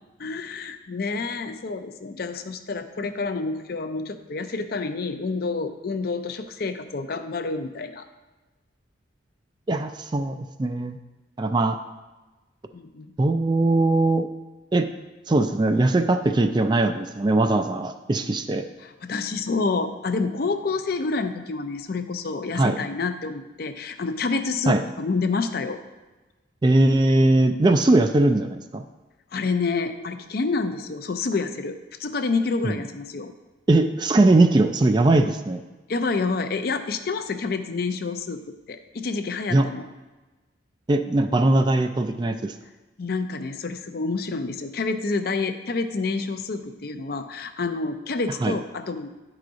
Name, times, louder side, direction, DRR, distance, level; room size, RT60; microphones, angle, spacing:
voice 1, 0.2-8.1 12.7-13.1 18.8-25.8 29.3-33.3 35.9-38.4 38.7-39.9 43.0-49.1, left 4 dB, 50° left, 8 dB, 0.5 m, -28 dB
voice 2, 9.7-11.0 11.4-11.8 13.2-14.3 14.7-14.9 15.3-18.6 22.6-22.8 24.7-24.8 26.6-28.8 32.6-32.8 33.7-35.6 39.5-39.7 40.9-42.5 48.4-48.6, right 2 dB, 25° right, 7 dB, 0.3 m, -20 dB
10.5 x 4.9 x 3.9 m, 1.2 s
head